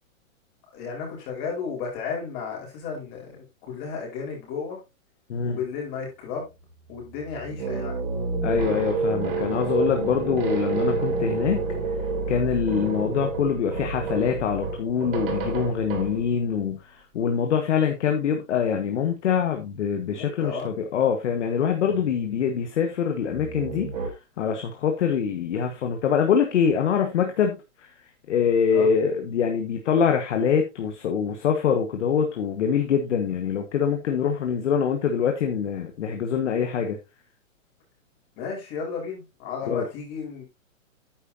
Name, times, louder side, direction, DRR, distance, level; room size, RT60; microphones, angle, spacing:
voice 1, 0.7-4.8 5.4-6.5 6.9-8.0 12.7-12.9 20.1-20.7 28.7-28.9 38.4-40.4, left 5 dB, 30° left, 5.0 m, -33 dB
sound 1, 6.5-16.6 21.8-22.5 23.2-24.1, right 3 dB, 45° right, 3.1 m, -29 dB
voice 2, 8.4-11.6 12.3-16.8 17.1-23.9 24.4-27.6 28.3-37.0 39.7-39.8, left 7 dB, 60° left, 1.7 m, -24 dB
9.8 x 8.8 x 2.8 m
hypercardioid pair, 160°, 41 cm